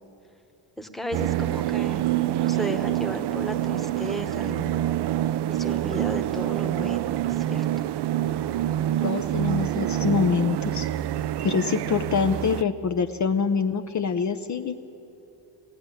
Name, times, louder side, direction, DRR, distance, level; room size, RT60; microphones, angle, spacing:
voice 1, 0.8-4.7 5.5-7.7, right 1 dB, ahead, 6 dB, 1.2 m, -34 dB
sound 1, 1.1-12.6, right 12 dB, 65° right, 0.6 m, -26 dB
voice 2, 9.0-10.9 11.4-14.8, left 6 dB, 40° left, 7 dB, 0.8 m, -25 dB
20.5 x 16.0 x 9.9 m, 2.9 s
cardioid pair, 130°, 44 cm